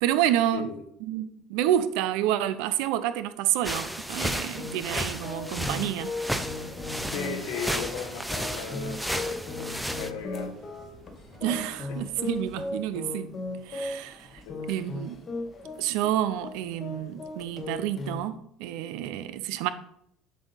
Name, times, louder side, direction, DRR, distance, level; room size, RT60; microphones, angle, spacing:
voice 1, 0.0-0.7 1.0-6.1 11.4-13.3 13.7-14.4 14.7-15.2 15.8-19.7, right 12 dB, 80° right, 0.5 m, -29 dB
voice 2, 0.5-0.8 7.0-10.5 11.9-12.0 14.4-14.7, left 6 dB, 90° left, 1.1 m, -37 dB
sound 1, 3.6-10.1, equal, ahead, 0.4 m, -33 dB
sound 2, 4.6-18.3, left 2 dB, 35° left, 0.9 m, -37 dB
sound 3, 6.3-12.7, right 2 dB, 35° right, 1.5 m, -51 dB
7.5 x 2.7 x 5.4 m
cardioid pair, 120°, 0 cm